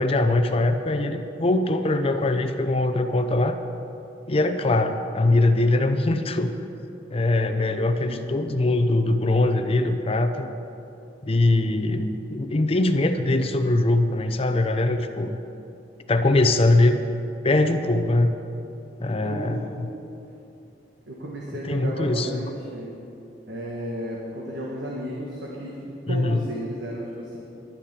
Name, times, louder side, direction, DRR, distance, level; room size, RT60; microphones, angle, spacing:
voice 1, 0.0-3.6 4.3-6.5 7.1-10.5 11.2-15.4 16.1-17.0 17.4-18.3 19.0-19.9 21.6-22.4 26.1-26.4, left 2 dB, 35° left, 8 dB, 0.6 m, -22 dB
voice 2, 19.2-19.7 21.1-23.0 23.5-27.4, equal, 70° right, -3 dB, 1.7 m, -33 dB
11.5 x 9.1 x 8.1 m, 2.8 s
head